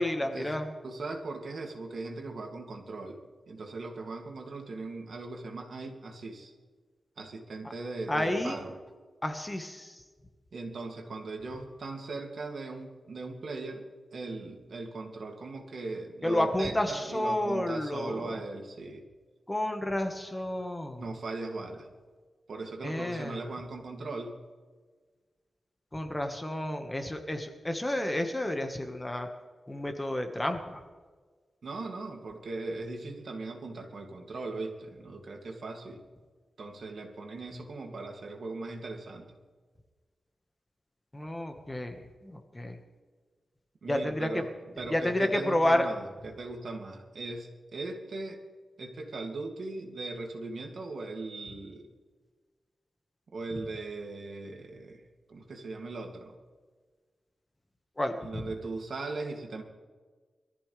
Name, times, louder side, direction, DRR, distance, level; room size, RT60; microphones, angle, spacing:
voice 1, 0.0-0.7 8.1-8.7 9.2-10.0 16.2-18.4 19.5-21.0 22.8-23.4 25.9-29.3 29.7-30.8 41.1-42.8 43.9-44.4 44.9-45.9 58.0-58.4, left 1 dB, 15° left, 5 dB, 1.6 m, -30 dB
voice 2, 0.8-3.2 3.5-6.5 7.2-8.7 10.5-13.9 14.1-19.0 21.0-21.9 22.5-24.3 31.6-36.0 36.6-39.4 43.8-44.5 44.8-48.4 48.8-51.9 53.3-55.0 55.3-56.4 58.2-59.6, right 3 dB, 65° right, 2 dB, 2.5 m, -39 dB
23.5 x 14.0 x 3.4 m, 1.4 s
wide cardioid pair, 110°, 0 cm